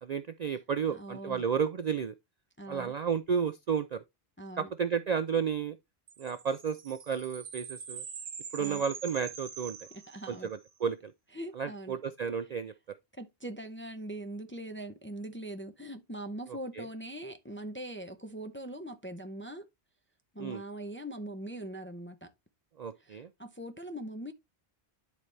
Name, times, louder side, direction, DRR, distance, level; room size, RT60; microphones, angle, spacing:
voice 1, 0.0-2.1 2.7-4.0 4.6-5.8 6.2-8.0 8.5-9.8 10.3-11.1 11.6-13.0 16.5-16.9 20.4-20.6 22.8-23.3, right 7 dB, 55° right, 0.5 m, -32 dB
voice 2, 0.9-1.4 2.6-2.9 4.4-4.7 8.6-8.8 9.9-10.5 11.3-12.0 13.2-19.6 20.3-22.3 23.0-24.3, right 1 dB, 15° left, 0.5 m, -41 dB
sound 1, 6.1-10.7, right 6 dB, 85° right, 1.3 m, -44 dB
10.5 x 4.1 x 3.2 m
omnidirectional pair, 1.1 m